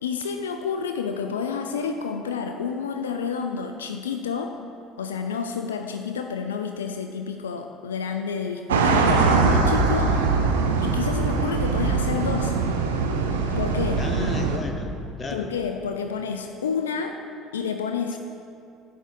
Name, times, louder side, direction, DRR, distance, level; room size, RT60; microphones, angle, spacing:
voice 1, 0.0-4.5 5.0-10.2 10.8-12.6 13.6-14.0 15.3-17.2 17.5-18.2, left 6 dB, 75° left, 5 dB, 0.3 m, -29 dB
sound 1, 8.7-14.6, right 4 dB, 70° right, 0.6 m, -22 dB
voice 2, 14.0-15.5, left 3 dB, 25° left, 5 dB, 0.8 m, -34 dB
10.0 x 3.7 x 6.4 m, 2.5 s
figure-of-eight pair, 60°, 0 cm